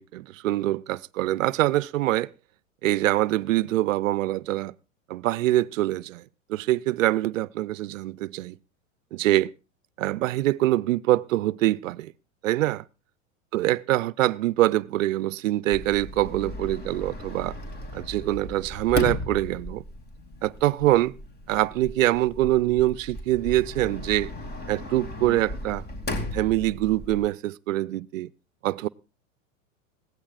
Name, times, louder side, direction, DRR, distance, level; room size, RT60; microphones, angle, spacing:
voice 1, 0.0-2.3 2.8-4.7 5.1-6.2 6.5-8.5 9.1-9.5 10.0-12.1 12.4-12.8 13.5-17.6 17.9-19.8 20.4-21.1 21.5-24.3 24.7-25.8 26.3-28.3 28.6-28.9, right 16 dB, 75° right, 0.6 m, -24 dB
Sliding door, 15.7-27.2, left 2 dB, 25° left, 2.8 m, -36 dB
21.0 x 16.5 x 2.5 m
hypercardioid pair, 105°, 39 cm